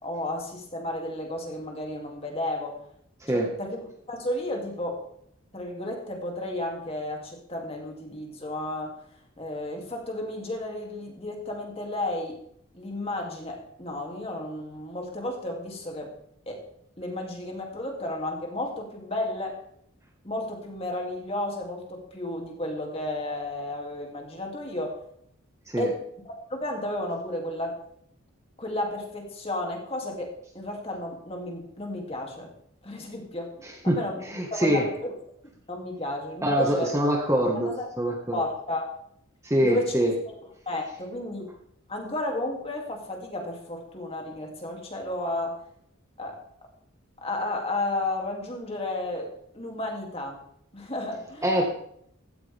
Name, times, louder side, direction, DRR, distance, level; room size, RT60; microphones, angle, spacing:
voice 1, 0.0-2.8 3.3-5.0 5.5-8.9 9.4-12.4 12.7-16.1 16.5-16.7 17.0-19.6 20.2-25.0 25.8-27.8 28.6-32.5 32.8-33.5 33.8-35.1 35.7-36.9 37.5-37.9 38.3-38.9 39.6-39.9 40.7-41.5 41.9-45.6 46.2-46.4 47.2-50.4 50.7-51.7, left 1 dB, 25° left, 1 dB, 2.8 m, -33 dB
voice 2, 34.3-34.9 36.4-37.7 38.0-38.4 39.4-40.1 51.4-51.6, equal, 15° right, 0 dB, 1.6 m, -24 dB
16.0 x 14.0 x 3.6 m, 0.68 s
head